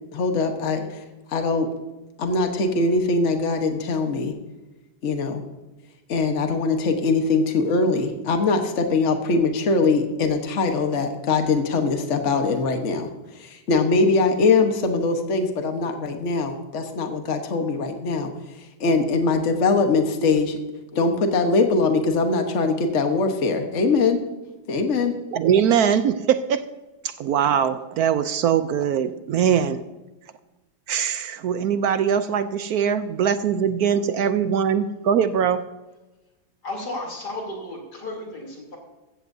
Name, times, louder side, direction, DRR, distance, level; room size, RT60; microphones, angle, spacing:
voice 1, 0.1-1.0 1.3-1.7 2.2-4.3 5.0-5.4 6.1-13.1 13.4-18.3 18.8-20.6 20.9-24.2 24.7-25.2, left 3 dB, 45° left, 5 dB, 1.5 m, -22 dB
voice 2, 25.3-26.7 27.0-29.8 30.9-35.6, right 8 dB, 70° right, 11 dB, 1.1 m, -22 dB
voice 3, 36.6-38.8, left 2 dB, 70° left, 0 dB, 3.7 m, -33 dB
15.5 x 14.5 x 2.7 m, 1.1 s
omnidirectional pair, 1.8 m